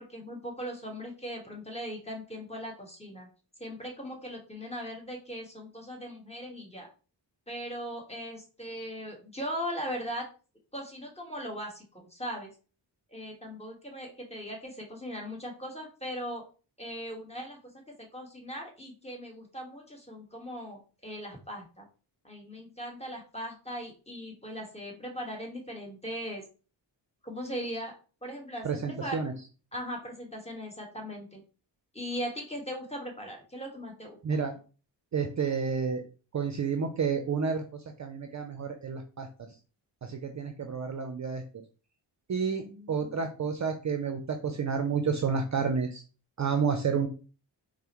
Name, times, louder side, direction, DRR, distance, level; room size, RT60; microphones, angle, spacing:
voice 1, 0.0-3.3 3.6-6.9 7.5-10.3 10.7-12.5 13.1-16.4 16.8-17.6 18.0-21.8 22.2-26.4 27.2-27.9 28.2-29.2 29.7-31.4 31.9-34.2 42.5-43.1, equal, 15° left, 0 dB, 1.3 m, -39 dB
voice 2, 28.6-29.3 34.2-34.5 35.1-36.0 36.3-39.3 40.0-41.4 42.3-46.0 46.4-47.1, right 5 dB, 40° right, 5 dB, 0.5 m, -30 dB
4.6 x 2.1 x 2.9 m, 0.36 s
cardioid pair, 55°, 47 cm